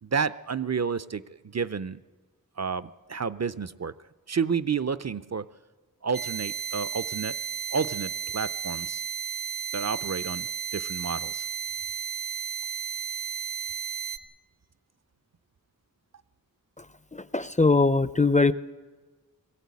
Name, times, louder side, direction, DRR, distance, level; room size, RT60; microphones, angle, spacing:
voice 1, 0.0-2.0 2.6-3.9 4.3-5.5 6.0-7.4 7.7-9.0 9.7-11.4, right 6 dB, 45° right, 16 dB, 0.5 m, -30 dB
sound 1, 6.1-14.2, right 7 dB, 70° right, 0.9 m, -33 dB
voice 2, 17.1-18.5, left 3 dB, 20° left, 15 dB, 0.5 m, -21 dB
20.5 x 16.0 x 8.3 m, 1.3 s
wide cardioid pair, 65°, 35 cm